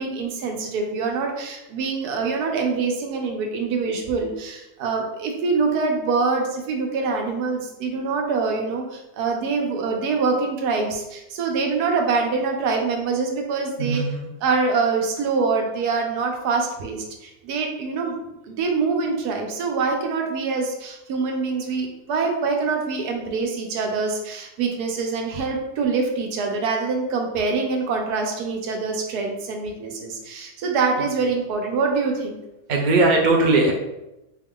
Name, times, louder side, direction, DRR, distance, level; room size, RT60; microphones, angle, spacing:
voice 1, 0.0-14.0 14.4-32.4, right 4 dB, 85° right, 2 dB, 1.2 m, -25 dB
voice 2, 13.8-14.3 31.0-31.1 32.7-33.7, right 2 dB, 55° right, 0 dB, 0.5 m, -19 dB
4.1 x 2.3 x 3.6 m, 0.92 s
omnidirectional pair, 1.6 m